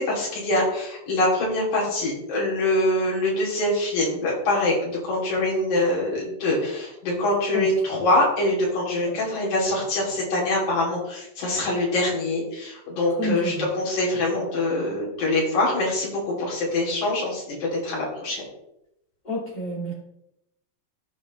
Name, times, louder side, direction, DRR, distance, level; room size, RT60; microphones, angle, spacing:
voice 1, 0.0-18.4, left 1 dB, 65° left, -4 dB, 4.2 m, -24 dB
voice 2, 13.1-13.7 14.1-14.3 19.2-19.9, right 1 dB, 15° left, -5 dB, 2.4 m, -30 dB
14.0 x 5.1 x 3.1 m, 0.83 s
omnidirectional pair, 3.7 m